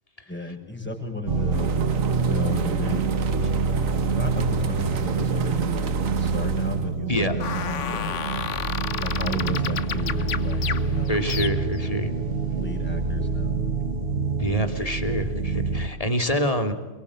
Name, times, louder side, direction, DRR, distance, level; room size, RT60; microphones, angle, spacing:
voice 1, 0.3-1.7 2.2-3.1 4.1-8.1 9.0-11.2 12.5-13.5, left 1 dB, 10° left, 3 dB, 6.3 m, -34 dB
sound 1, 1.3-15.9, right 4 dB, 45° right, 1.6 m, -26 dB
sound 2, 1.5-6.9, right 6 dB, 75° right, 1.6 m, -34 dB
sound 3, 7.4-11.9, left 7 dB, 65° left, 1.4 m, -31 dB
voice 2, 11.1-12.1 14.4-16.7, equal, 25° left, 7 dB, 2.9 m, -26 dB
28.5 x 23.5 x 8.9 m, 1.2 s
omnidirectional pair, 1.4 m